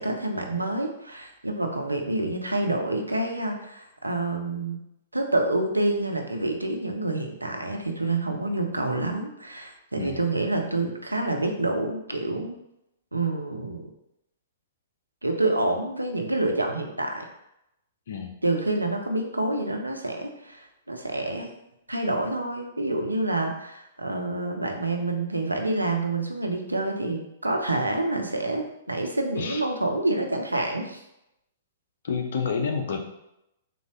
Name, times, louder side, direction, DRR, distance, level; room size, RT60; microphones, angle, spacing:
voice 1, 0.0-4.8 5.1-12.6 13.1-13.9 15.2-17.3 18.4-21.5 21.9-31.0, right 2 dB, 85° right, 3 dB, 0.5 m, -27 dB
voice 2, 32.0-33.0, left 5 dB, 60° left, 3 dB, 0.6 m, -29 dB
3.7 x 2.7 x 3.0 m, 0.85 s
figure-of-eight pair, 110°, 0 cm